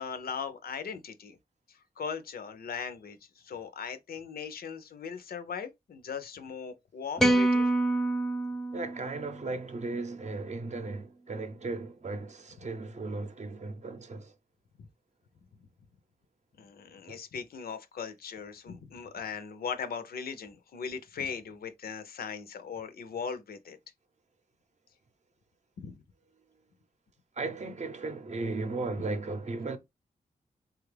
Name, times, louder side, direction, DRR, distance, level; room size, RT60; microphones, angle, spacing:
voice 1, 0.0-1.4 1.7-7.7 14.8-14.9 16.6-23.8 25.8-26.0, left 6 dB, 75° left, 0.5 m, -39 dB
sound 1, 7.2-9.6, right 2 dB, ahead, 0.5 m, -27 dB
voice 2, 8.7-14.3 17.1-17.2 27.4-29.8, right 3 dB, 50° right, 0.6 m, -36 dB
3.3 x 2.3 x 3.2 m
cardioid pair, 75°, 16 cm